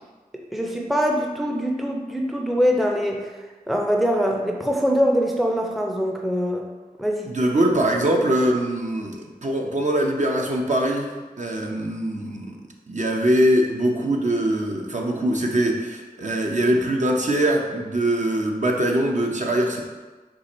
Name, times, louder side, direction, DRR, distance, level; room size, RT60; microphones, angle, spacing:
voice 1, 0.5-3.3 3.7-6.7 7.0-7.3, equal, ahead, 1 dB, 0.5 m, -23 dB
voice 2, 7.3-11.1 11.4-12.6 12.9-19.8, right 1 dB, 50° right, 0 dB, 0.6 m, -22 dB
4.6 x 2.5 x 4.1 m, 1.3 s
wide cardioid pair, 45°, 16 cm